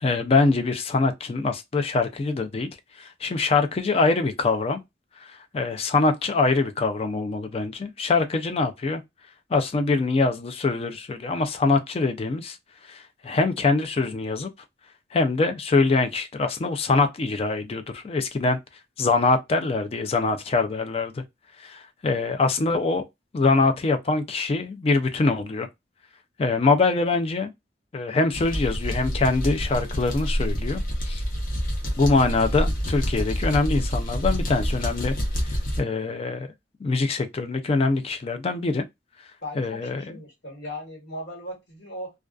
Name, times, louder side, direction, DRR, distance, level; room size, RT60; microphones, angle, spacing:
voice 1, 0.0-2.7 3.0-4.8 5.5-9.0 9.5-12.6 12.9-14.5 15.1-18.6 19.0-21.2 21.6-23.0 23.3-25.7 26.4-27.5 27.9-31.2 32.0-35.2 35.5-36.5 36.8-38.8 39.6-40.0, left 3 dB, 35° left, 0.3 m, -24 dB
sound 1, 28.3-35.8, equal, 50° left, 0.8 m, -27 dB
voice 2, 39.4-42.1, left 1 dB, 65° left, 1.3 m, -37 dB
2.4 x 2.3 x 2.3 m
head